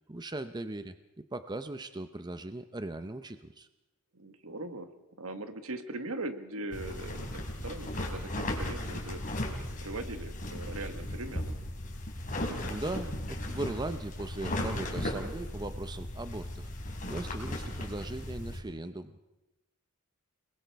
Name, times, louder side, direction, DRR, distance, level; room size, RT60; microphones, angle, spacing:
voice 1, 0.1-0.9 1.3-3.7 12.7-19.2, right 2 dB, 20° right, 10 dB, 0.7 m, -39 dB
voice 2, 4.1-4.9 5.2-9.2 9.8-11.6, right 2 dB, 70° right, 9 dB, 1.5 m, -40 dB
sound 1, 6.7-18.6, left 1 dB, 40° left, 3.6 m, -36 dB
29.5 x 20.0 x 4.7 m, 0.98 s
head